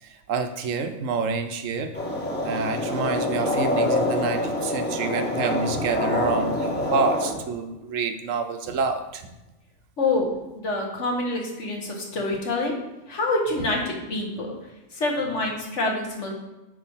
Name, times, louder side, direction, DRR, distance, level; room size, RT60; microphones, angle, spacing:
voice 1, 0.0-1.9 2.4-9.3, right 4 dB, 65° right, 7 dB, 1.0 m, -28 dB
sound 1, 1.9-7.3, left 1 dB, 5° left, 1.4 m, -26 dB
voice 2, 10.0-12.8 13.1-14.5 14.9-16.3, left 2 dB, 55° left, 0 dB, 1.6 m, -26 dB
8.3 x 3.3 x 5.5 m, 0.98 s
omnidirectional pair, 1.5 m